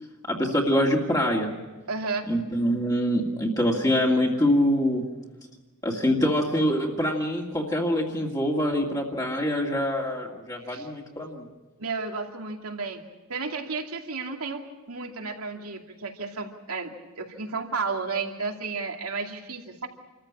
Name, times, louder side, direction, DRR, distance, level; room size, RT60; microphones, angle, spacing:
voice 1, 0.3-1.5 2.3-5.0 5.8-11.5, equal, 15° left, -1 dB, 2.2 m, -24 dB
voice 2, 1.9-2.3 10.6-10.9 11.8-13.0 13.3-19.9, right 4 dB, 80° right, 2 dB, 2.6 m, -33 dB
28.0 x 14.5 x 8.7 m, 1.2 s
head